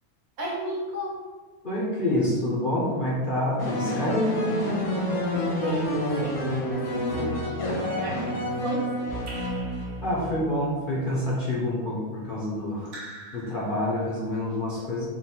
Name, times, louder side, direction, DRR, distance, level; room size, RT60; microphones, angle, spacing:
voice 1, 0.4-1.2 5.3-9.4, equal, 80° right, -4 dB, 1.5 m, -34 dB
voice 2, 1.6-4.2 10.0-12.9 13.3-15.1, left 1 dB, 50° left, -5 dB, 0.7 m, -27 dB
sound 1, 3.6-10.2, equal, 80° left, 1.4 m, -28 dB
Raindrop / Drip, 9.3-10.5 12.8-14.2, right 2 dB, 60° right, 1.2 m, -44 dB
3.9 x 2.2 x 4.2 m, 1.4 s
omnidirectional pair, 1.5 m